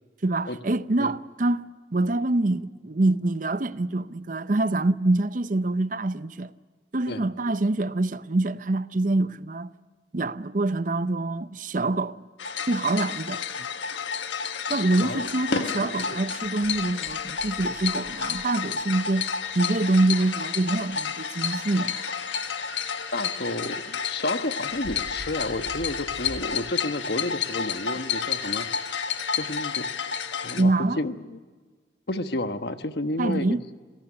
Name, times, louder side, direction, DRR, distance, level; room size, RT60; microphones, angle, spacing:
voice 1, 0.2-6.5 6.9-9.7 10.1-12.2 12.7-13.4 14.7-19.2 19.5-21.9 30.6-31.0 33.2-33.6, right 2 dB, 45° right, 0.7 m, -25 dB
sound 1, 12.4-30.6, left 6 dB, 85° left, 1.4 m, -31 dB
voice 2, 14.7-15.3 23.1-29.1 29.4-29.9 30.4-31.4 32.1-33.6, left 2 dB, 60° left, 1.2 m, -31 dB
sound 2, 17.9-29.6, right 4 dB, 30° right, 7.8 m, -51 dB
26.5 x 17.5 x 9.8 m
head